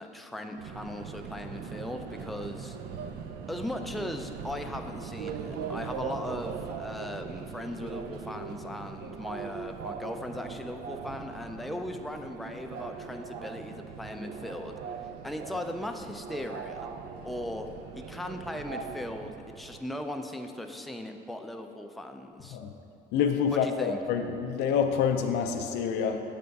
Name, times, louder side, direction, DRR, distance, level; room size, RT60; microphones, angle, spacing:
voice 1, 0.0-2.8 3.5-14.7 15.0-16.9 17.2-17.7 17.9-22.6 23.5-24.0, left 1 dB, ahead, 5 dB, 0.3 m, -38 dB
Subway metro underground, 0.6-19.8, right 6 dB, 75° right, 0.4 m, -40 dB
voice 2, 23.1-26.2, left 7 dB, 80° left, 5 dB, 0.4 m, -27 dB
6.7 x 3.4 x 5.2 m, 2.9 s
cardioid pair, 110°, 17 cm